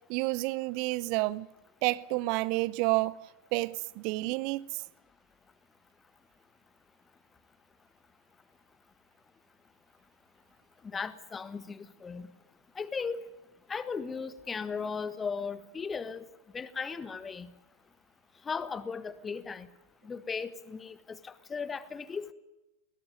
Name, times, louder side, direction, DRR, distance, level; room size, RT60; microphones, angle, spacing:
voice 1, 0.1-1.5 1.8-3.1 3.5-4.6, right 22 dB, 45° right, 0.7 m, -29 dB
voice 2, 10.8-12.3 12.7-13.2 13.7-16.2 16.5-17.5 18.4-19.7 20.0-22.3, left 5 dB, 15° left, 1.4 m, -37 dB
21.5 x 17.5 x 9.4 m
figure-of-eight pair, 90°, 0 cm